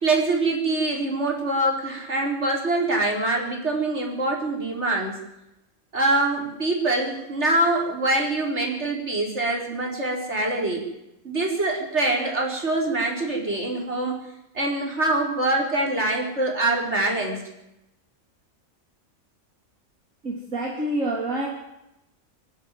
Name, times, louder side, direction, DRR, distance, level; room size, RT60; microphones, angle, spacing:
voice 1, 0.0-5.2 5.9-10.8 11.2-14.2 14.5-17.4, right 2 dB, 50° right, 0 dB, 4.9 m, -24 dB
voice 2, 20.2-21.5, right 1 dB, 70° right, -1 dB, 3.3 m, -27 dB
26.0 x 12.0 x 9.3 m, 0.90 s
omnidirectional pair, 1.4 m